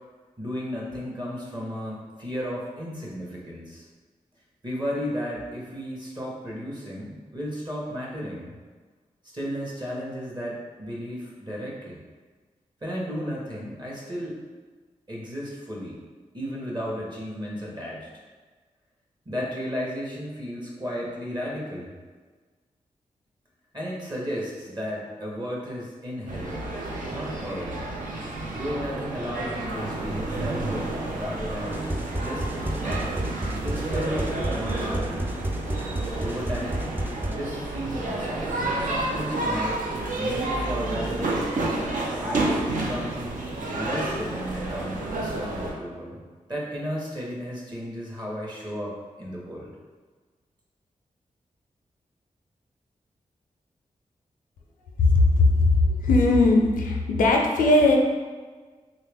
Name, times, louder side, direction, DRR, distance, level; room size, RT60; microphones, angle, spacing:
voice 1, 0.4-3.9 4.6-8.6 9.2-12.0 12.8-14.4 15.1-16.0 16.3-18.2 19.3-21.9 23.7-26.6 27.1-27.9 28.6-31.8 32.2-33.3 33.6-35.3 36.2-36.9 37.3-39.8 40.2-41.7 42.2-43.2 43.7-46.2 46.5-49.7, equal, 30° right, -4 dB, 0.9 m, -34 dB
sound 1, 26.3-45.7, right 2 dB, 75° right, 0.6 m, -30 dB
sound 2, 31.7-37.4, right 1 dB, 15° right, 0.4 m, -31 dB
voice 2, 55.0-58.0, left 2 dB, 90° left, 0 dB, 0.4 m, -19 dB
3.2 x 2.4 x 3.4 m, 1.4 s
cardioid pair, 40°, 14 cm